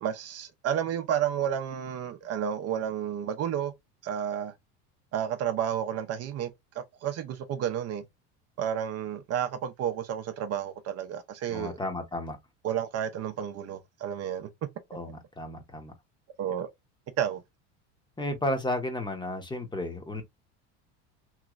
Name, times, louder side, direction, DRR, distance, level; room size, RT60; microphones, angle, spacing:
voice 1, 0.0-3.7 4.0-4.5 5.1-8.0 8.6-11.8 12.6-14.5 16.4-16.7 17.2-17.4, right 9 dB, 45° right, 0.6 m, -31 dB
voice 2, 11.5-12.4 14.9-15.9 18.2-20.2, left 1 dB, 15° left, 0.8 m, -33 dB
3.1 x 2.9 x 2.4 m
supercardioid pair, 100°, 35 cm